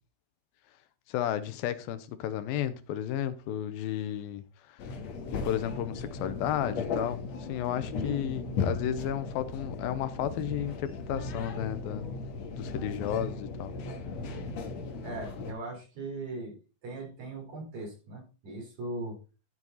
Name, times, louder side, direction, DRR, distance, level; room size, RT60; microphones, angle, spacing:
voice 1, 1.1-4.4 5.3-12.1 12.6-13.7, left 11 dB, 85° left, 2.7 m, -33 dB
sound 1, 4.8-15.5, left 3 dB, 55° left, 2.4 m, -36 dB
voice 2, 15.0-19.2, right 2 dB, 50° right, 5.5 m, -39 dB
12.0 x 7.4 x 4.1 m
omnidirectional pair, 4.2 m